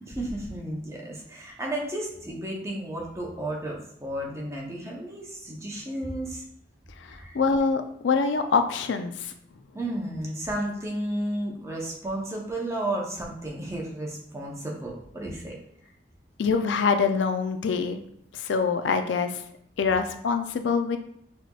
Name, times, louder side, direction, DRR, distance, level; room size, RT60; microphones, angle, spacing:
voice 1, 0.0-6.4 7.1-7.4 9.7-15.5, right 1 dB, 15° right, -2 dB, 0.7 m, -33 dB
voice 2, 7.1-9.3 16.4-18.0 18.3-19.3 19.8-21.0, left 5 dB, 80° left, 8 dB, 0.4 m, -25 dB
5.8 x 2.9 x 2.3 m, 0.71 s
head